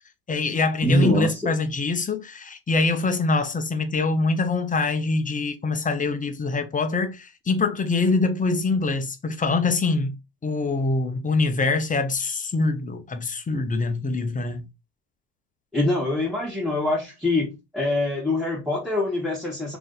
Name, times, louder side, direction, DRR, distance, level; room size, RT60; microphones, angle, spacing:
voice 1, 0.3-10.2 10.4-14.7, left 3 dB, 15° left, 0.5 m, -24 dB
voice 2, 0.8-1.5 15.7-19.8, left 1 dB, ahead, 1.1 m, -24 dB
3.3 x 2.6 x 3.7 m
supercardioid pair, 90°, 49 cm